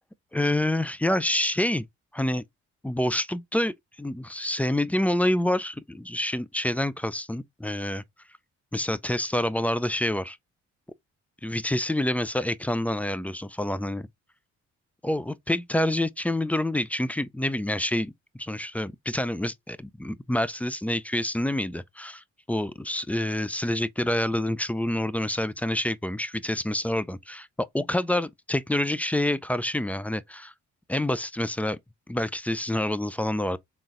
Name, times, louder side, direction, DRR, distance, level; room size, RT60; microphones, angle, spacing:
voice 1, 0.3-1.9 2.1-2.4 2.8-8.0 8.7-10.4 11.4-14.1 15.0-18.1 18.4-27.5 27.7-30.5 30.9-31.8 32.1-33.6, left 1 dB, 5° left, 0.3 m, -27 dB
3.9 x 3.6 x 2.4 m
cardioid pair, 90°, 30 cm